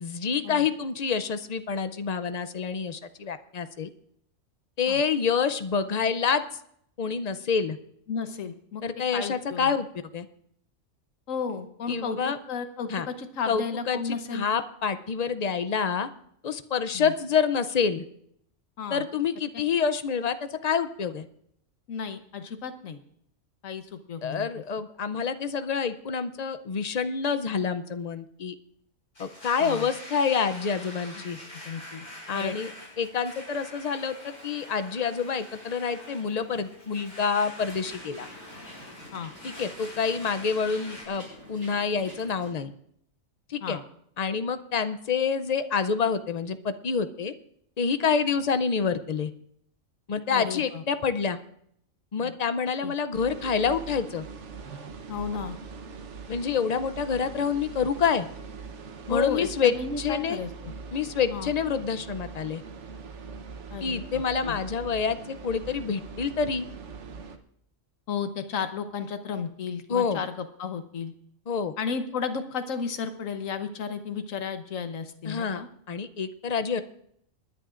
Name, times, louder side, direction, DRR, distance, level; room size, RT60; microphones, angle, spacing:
voice 1, 0.0-3.9 4.8-6.4 7.0-7.8 8.8-9.9 10.1-10.3 11.9-12.4 12.9-13.1 13.5-16.1 16.4-18.0 18.9-21.3 24.2-28.5 29.2-31.4 32.3-32.7 33.0-38.3 39.4-42.7 43.5-43.8 44.2-47.3 47.8-49.3 50.1-51.4 52.1-54.3 56.3-58.3 59.1-60.4 60.9-62.6 63.8-66.7 69.9-70.2 71.5-71.7 75.2-76.8, left 6 dB, 50° left, 11 dB, 0.4 m, -27 dB
voice 2, 8.1-8.8 9.1-9.7 11.3-12.2 12.5-14.4 16.9-17.1 18.8-19.0 21.9-23.0 23.6-24.5 29.6-29.9 31.1-31.2 31.6-32.0 32.3-32.6 39.1-39.3 43.6-43.8 50.3-50.8 52.2-52.3 52.8-52.9 55.1-55.6 59.1-60.5 61.3-61.5 63.7-64.0 64.4-64.6 68.1-71.1 71.8-75.7, left 6 dB, 80° left, 9 dB, 1.4 m, -33 dB
Domestic sounds home sounds, 29.1-41.0, left 1 dB, 30° left, 4.4 m, -45 dB
sound 1, 37.5-42.5, equal, 15° right, 7.1 m, -48 dB
sound 2, 53.1-67.4, right 5 dB, 65° right, 1.2 m, -42 dB
28.0 x 10.5 x 2.5 m, 0.69 s
omnidirectional pair, 1.4 m